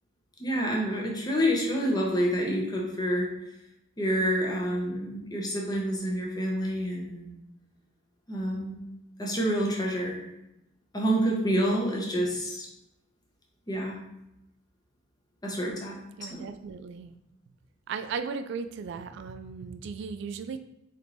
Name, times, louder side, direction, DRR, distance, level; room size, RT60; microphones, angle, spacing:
voice 1, 0.4-3.3 4.0-7.3 8.3-8.8 9.2-10.2 10.9-12.7 13.7-14.0 15.4-16.0 16.3-16.4, equal, 20° left, -2 dB, 0.8 m, -28 dB
voice 2, 16.2-17.1 17.9-20.6, right 5 dB, 65° right, 9 dB, 0.3 m, -36 dB
3.7 x 3.5 x 2.9 m, 0.86 s
head